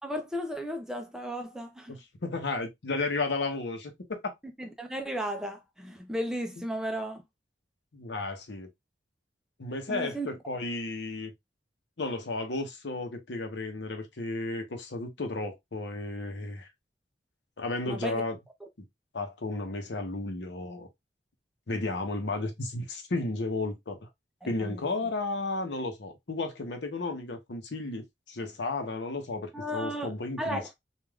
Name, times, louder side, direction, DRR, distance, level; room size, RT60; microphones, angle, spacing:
voice 1, 0.0-2.0 4.6-7.2 9.9-10.3 17.9-18.2 18.6-18.7 24.4-24.8 29.5-30.8, equal, 5° right, 0.4 m, -35 dB
voice 2, 1.9-4.3 7.9-8.7 9.6-11.3 12.0-16.7 17.6-18.4 19.1-20.9 21.7-24.0 24.4-30.6, left 2 dB, 80° left, 0.8 m, -33 dB
3.3 x 2.4 x 2.3 m
head